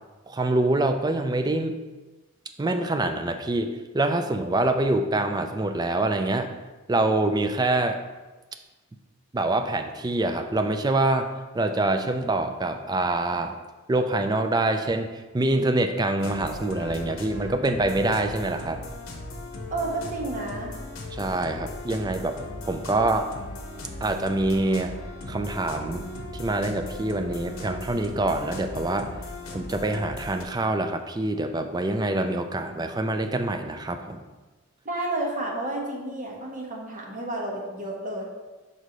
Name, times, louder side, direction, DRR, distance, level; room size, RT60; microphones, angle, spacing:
voice 1, 0.3-1.7 2.6-6.5 6.9-8.0 9.3-11.3 11.5-13.6 13.9-15.1 15.3-18.8 21.1-22.4 22.6-23.3 24.0-24.9 25.3-26.0 26.3-29.1 29.5-34.2, right 2 dB, 20° right, 6 dB, 0.3 m, -25 dB
sound 1, 16.2-30.4, left 2 dB, 70° left, 0.8 m, -38 dB
voice 2, 19.7-20.7 34.8-38.2, right 2 dB, 35° right, -2 dB, 1.2 m, -31 dB
5.4 x 4.8 x 3.9 m, 1.2 s
head